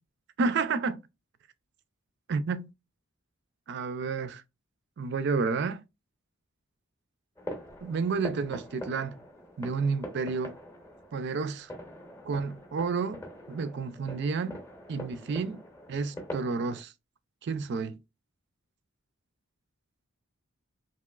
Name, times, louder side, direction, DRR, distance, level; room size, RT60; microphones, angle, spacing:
voice 1, 0.4-1.0 2.3-2.7 3.7-4.4 5.0-5.8 7.8-9.2 9.6-10.6 11.1-11.7 12.2-13.2 13.5-14.6 14.9-15.6 15.9-16.9 17.4-18.0, right 4 dB, 50° right, 0.3 m, -30 dB
sound 1, 7.4-16.8, left 1 dB, 10° left, 0.6 m, -44 dB
2.9 x 2.8 x 2.3 m
head